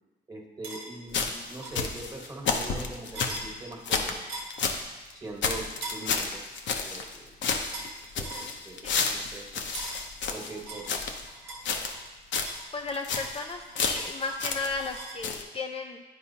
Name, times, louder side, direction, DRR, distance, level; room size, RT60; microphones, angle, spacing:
voice 1, 0.3-4.2 5.1-6.4 6.8-7.3 8.1-9.7 10.3-11.2 14.3-14.4, right 2 dB, 20° right, 1 dB, 1.3 m, -42 dB
sound 1, 0.6-0.9 1.6-1.8 3.1-3.5 4.3-4.6 5.8-6.1 7.7-8.0 8.2-8.5 9.7-10.1 10.7-12.1 12.5-15.2, right 2 dB, 90° right, 1.1 m, -41 dB
sound 2, 1.1-4.9 5.1-5.2 5.4-7.2 7.4-11.3 11.6-12.1 12.3-12.6 12.9-13.4 13.8-15.0 15.2-15.4, left 5 dB, 65° left, 0.7 m, -31 dB
voice 2, 12.7-16.0, left 3 dB, 30° left, 3 dB, 0.4 m, -35 dB
9.9 x 4.6 x 2.8 m, 1.2 s
cardioid pair, 90°, 20 cm